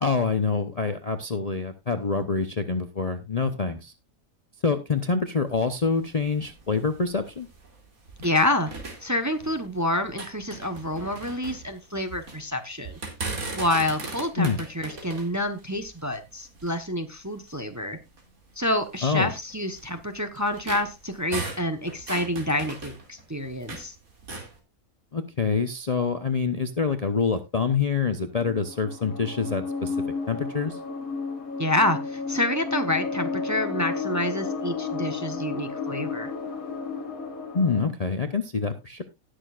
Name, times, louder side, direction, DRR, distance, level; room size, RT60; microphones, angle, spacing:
voice 1, 0.0-3.9 4.6-7.5 14.4-14.6 19.0-19.3 25.1-30.0 30.3-30.8 37.5-39.0, left 5 dB, 35° left, 7 dB, 0.7 m, -26 dB
sound 1, 5.4-8.4 8.7-9.7 10.0-12.4 12.8-16.9 17.5-17.6 18.1-18.2 19.0-23.9 24.2-24.5, right 3 dB, 75° right, 3.0 m, -38 dB
voice 2, 8.2-8.7 9.0-13.0 13.6-18.0 18.6-23.9 31.6-36.3, left 1 dB, 15° right, 7 dB, 0.8 m, -28 dB
sound 2, 28.4-37.9, left 4 dB, 75° left, 2.4 m, -32 dB
19.0 x 6.6 x 2.4 m, 0.24 s
omnidirectional pair, 1.5 m